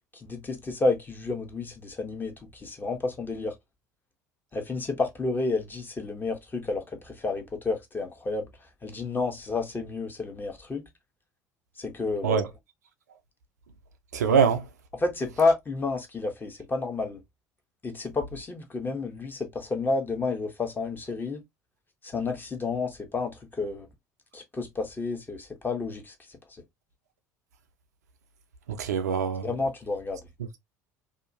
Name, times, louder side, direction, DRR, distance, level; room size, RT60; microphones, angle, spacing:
voice 1, 0.1-3.6 4.5-10.9 11.8-12.4 14.9-17.2 17.8-21.4 22.0-23.9 24.3-26.4 29.4-30.3, left 3 dB, 20° left, 1.0 m, -30 dB
voice 2, 14.1-14.6 28.8-29.5, right 6 dB, 80° right, 0.5 m, -23 dB
2.7 x 2.4 x 2.6 m
figure-of-eight pair, 65°, 9 cm